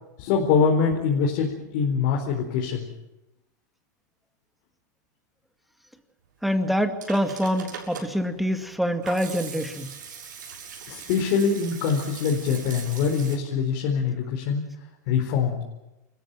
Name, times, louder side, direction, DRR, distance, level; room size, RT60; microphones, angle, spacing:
voice 1, 0.2-2.9 10.9-14.6 15.1-15.6, left 6 dB, 55° left, 1 dB, 4.5 m, -24 dB
voice 2, 6.4-9.9, equal, ahead, 6 dB, 2.3 m, -25 dB
Hands / Sink (filling or washing), 6.7-13.4, right 6 dB, 85° right, 6.9 m, -41 dB
28.0 x 15.0 x 9.2 m, 0.96 s
hypercardioid pair, 125°, 10 cm